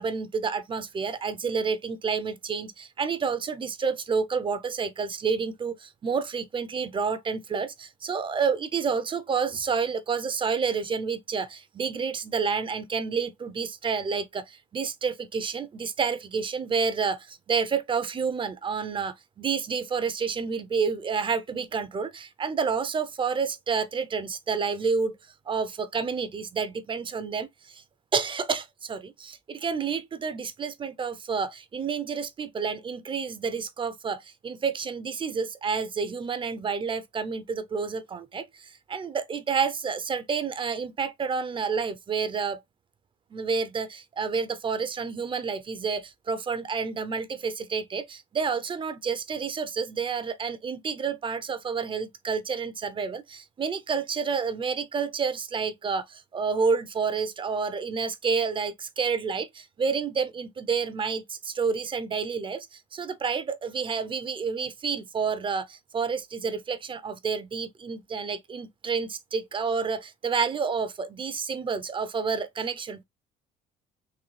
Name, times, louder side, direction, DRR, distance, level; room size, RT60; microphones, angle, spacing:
voice 1, 0.0-25.2 25.5-27.8 28.1-42.6 43.3-73.0, right 5 dB, 30° right, 0.5 m, -29 dB
3.9 x 2.7 x 3.1 m
cardioid pair, 110°, 17 cm